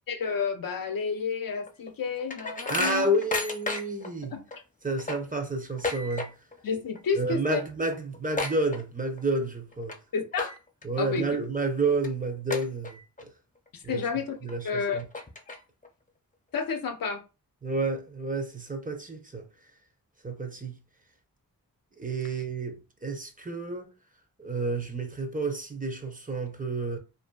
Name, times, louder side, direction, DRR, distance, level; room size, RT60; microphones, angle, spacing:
voice 1, 0.1-3.1 4.3-4.4 6.6-7.6 10.1-10.5 11.0-11.3 13.7-14.4 14.6-15.0 16.5-17.2, left 5 dB, 65° left, 0.6 m, -30 dB
sound 1, 1.7-4.1 4.5-4.6 4.9-6.6 6.9-7.2 7.5-7.6 7.9-9.3 9.7-10.0 10.3-10.8 11.3-11.4 12.0-12.1 12.5-13.2 13.7-13.8 14.5-14.6 15.0-15.9, left 3 dB, 20° left, 0.6 m, -33 dB
voice 2, 2.7-4.4 4.8-6.4 7.2-10.0 10.8-13.3 13.8-14.0 14.4-15.1 17.6-19.5 20.2-20.8 21.9-23.9 24.4-27.0, right 2 dB, 25° right, 0.6 m, -30 dB
2.6 x 2.4 x 2.3 m
cardioid pair, 45°, 36 cm